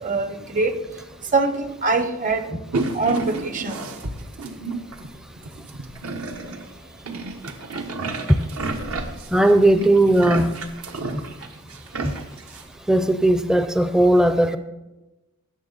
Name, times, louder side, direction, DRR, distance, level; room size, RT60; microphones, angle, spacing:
voice 1, 0.0-0.7 1.3-2.6 2.9-3.8, right 3 dB, 35° right, 9 dB, 0.9 m, -23 dB
sound 1, 2.7-5.1 5.4-6.7 7.0-12.7, right 3 dB, 75° right, 1.1 m, -31 dB
voice 2, 9.3-10.5 12.0-12.1 12.9-14.6, right 1 dB, 5° right, 9 dB, 0.5 m, -17 dB
16.5 x 6.7 x 4.0 m, 1.0 s
head